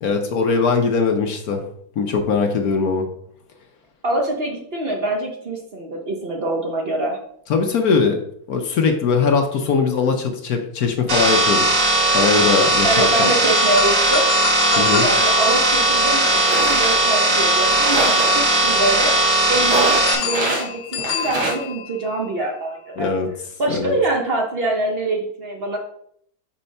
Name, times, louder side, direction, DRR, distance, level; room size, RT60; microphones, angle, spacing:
voice 1, 0.0-1.6 2.0-3.1 7.5-8.2 8.5-11.8 12.1-13.3 14.8-15.0 23.0-23.3 23.7-23.9, left 5 dB, 60° left, 4 dB, 1.1 m, -20 dB
voice 2, 4.0-7.2 12.8-14.3 14.7-23.1 23.6-25.8, right 2 dB, 40° right, 1 dB, 0.9 m, -25 dB
sound 1, 11.1-20.1, right 2 dB, 60° right, 2.5 m, -18 dB
Bicycle Bell, 13.6-17.6 20.1-22.4, left 6 dB, 80° left, 1.4 m, -29 dB
sound 2, 15.6-15.7 16.2-17.0 17.7-18.4 19.5-20.7 21.0-21.6, right 2 dB, 80° right, 2.3 m, -24 dB
5.7 x 4.0 x 5.3 m, 0.67 s
omnidirectional pair, 2.2 m